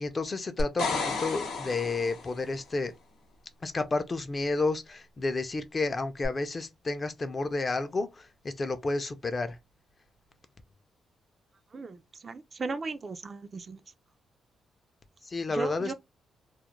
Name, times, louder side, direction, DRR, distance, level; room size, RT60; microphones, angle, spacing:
voice 1, 0.0-2.9 3.6-9.6 15.2-15.9, left 3 dB, 35° left, 0.4 m, -31 dB
sound 1, 0.6-2.5 6.2-6.3, left 4 dB, 85° left, 0.8 m, -32 dB
sound 2, 0.8-10.4, right 7 dB, 85° right, 0.9 m, -53 dB
voice 2, 12.2-13.8 15.5-15.9, right 3 dB, 35° right, 0.3 m, -36 dB
2.3 x 2.1 x 2.9 m
cardioid pair, 95°, 0 cm